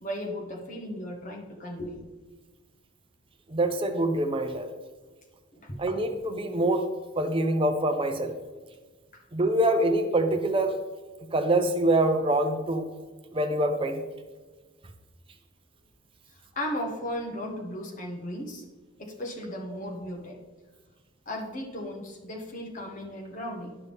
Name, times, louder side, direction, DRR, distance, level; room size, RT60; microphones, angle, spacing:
voice 1, 0.0-2.0 5.5-5.8 9.1-9.2 16.3-18.6 19.0-20.4 21.3-23.8, equal, 40° left, 0 dB, 1.2 m, -36 dB
voice 2, 3.5-4.7 5.8-6.9 7.2-8.3 9.3-10.8 11.3-12.9 13.3-14.0, right 1 dB, 25° right, 6 dB, 0.6 m, -25 dB
11.0 x 5.6 x 3.5 m, 1.3 s
head